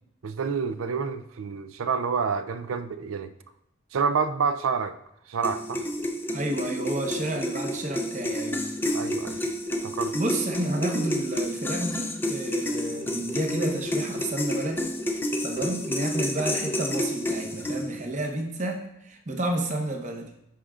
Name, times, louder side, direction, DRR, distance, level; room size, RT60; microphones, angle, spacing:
voice 1, 0.2-3.3 3.9-5.0 5.3-5.8 8.9-9.4 9.8-10.1, right 5 dB, 80° right, 10 dB, 0.4 m, -28 dB
sound 1, 5.4-18.1, equal, 10° left, 0.5 m, -30 dB
voice 2, 6.3-8.6 9.3-9.5 10.1-14.9 15.4-20.3, right 1 dB, 35° right, 3 dB, 0.9 m, -30 dB
11.5 x 5.0 x 2.4 m, 0.82 s
head